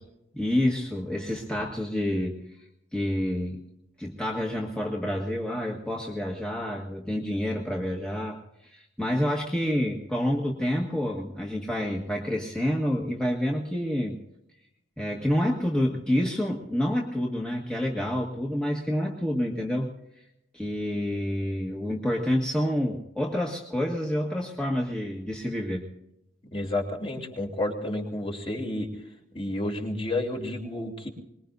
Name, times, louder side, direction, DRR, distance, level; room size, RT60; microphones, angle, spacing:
voice 1, 0.3-2.6 2.9-3.6 4.0-14.2 15.0-19.9 20.5-25.9, equal, 5° left, -2 dB, 1.7 m, -28 dB
voice 2, 26.5-28.9 29.3-31.1, left 1 dB, 30° left, 1 dB, 3.3 m, -30 dB
24.5 x 21.0 x 2.7 m, 0.85 s
head